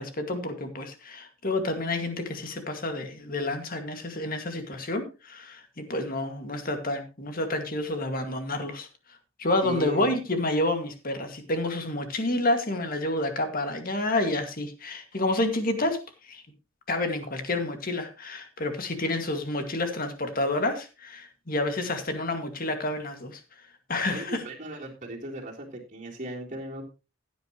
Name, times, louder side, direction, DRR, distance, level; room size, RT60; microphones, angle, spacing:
voice 1, 0.0-8.9 9.4-16.0 16.2-16.4 16.9-23.4 23.9-24.4, left 2 dB, 45° left, 6 dB, 2.1 m, -29 dB
voice 2, 9.6-10.2 24.1-26.8, equal, 35° right, -1 dB, 3.5 m, -37 dB
15.5 x 9.4 x 3.1 m, 0.29 s
head